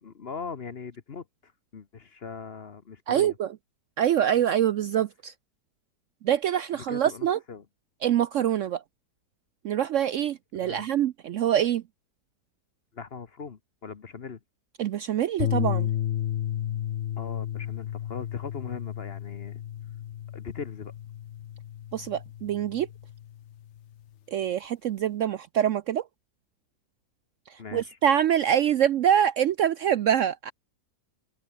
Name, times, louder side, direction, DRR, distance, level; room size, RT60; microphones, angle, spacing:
voice 1, 0.0-3.4 6.9-7.6 10.6-10.9 12.9-14.4 17.2-19.6 20.3-20.9 27.6-28.0, left 5 dB, 40° left, 1.2 m, -40 dB
voice 2, 3.1-3.5 4.0-5.3 6.2-7.4 8.0-8.8 9.6-11.8 14.8-15.9 21.9-22.9 24.3-26.0 27.7-30.5, right 10 dB, 65° right, 0.8 m, -25 dB
sound 1, 15.4-23.8, left 11 dB, 60° left, 0.8 m, -33 dB
omnidirectional pair, 1.7 m